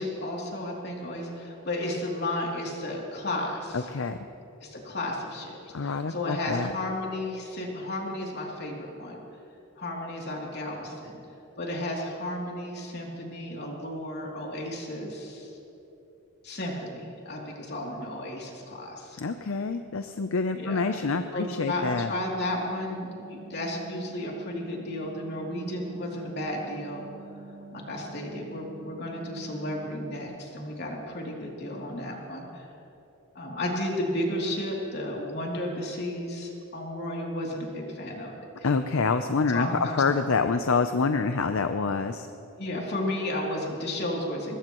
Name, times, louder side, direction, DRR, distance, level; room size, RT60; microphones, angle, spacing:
voice 1, 0.0-3.9 4.6-9.2 9.8-11.2 11.6-15.5 16.4-19.2 20.5-21.0 21.3-27.3 27.7-32.7 33.3-38.7 39.5-40.0 42.6-44.6, left 1 dB, 50° left, -2 dB, 3.0 m, -33 dB
voice 2, 3.7-4.2 5.7-6.7 19.2-22.1 38.6-39.7 39.9-42.3, left 4 dB, 70° left, 8 dB, 0.6 m, -27 dB
sound 1, 21.4-30.2, right 3 dB, 35° right, 1.2 m, -47 dB
23.0 x 20.0 x 3.1 m, 3.0 s
head